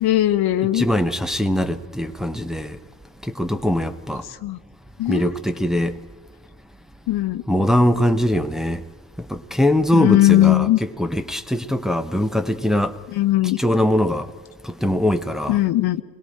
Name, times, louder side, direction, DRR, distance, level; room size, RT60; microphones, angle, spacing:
voice 1, 0.0-0.8 4.4-4.6 5.0-5.3 7.1-7.4 9.9-10.8 13.1-13.6 15.5-16.0, left 15 dB, 50° left, 0.9 m, -18 dB
voice 2, 0.7-2.8 3.2-4.2 5.1-6.0 7.5-8.8 9.2-13.0 13.6-14.3 14.6-15.6, left 1 dB, ahead, 1.1 m, -21 dB
29.0 x 21.0 x 4.4 m
figure-of-eight pair, 40°, 47 cm